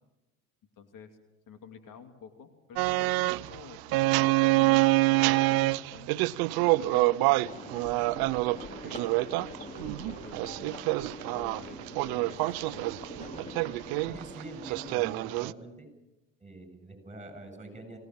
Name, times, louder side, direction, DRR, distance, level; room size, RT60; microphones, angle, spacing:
voice 1, 0.8-1.1 1.5-6.2 6.7-8.3 8.7-9.0 9.3-10.9 11.3-12.9, left 6 dB, 55° left, 7 dB, 2.6 m, -49 dB
sound 1, 2.8-15.5, right 21 dB, 65° right, 0.7 m, -26 dB
sound 2, 7.4-15.0, left 1 dB, 20° left, 3.1 m, -45 dB
voice 2, 14.1-15.9 16.4-18.0, right 2 dB, 15° right, 8 dB, 7.9 m, -45 dB
25.0 x 17.5 x 7.6 m, 0.98 s
hypercardioid pair, 75°, 39 cm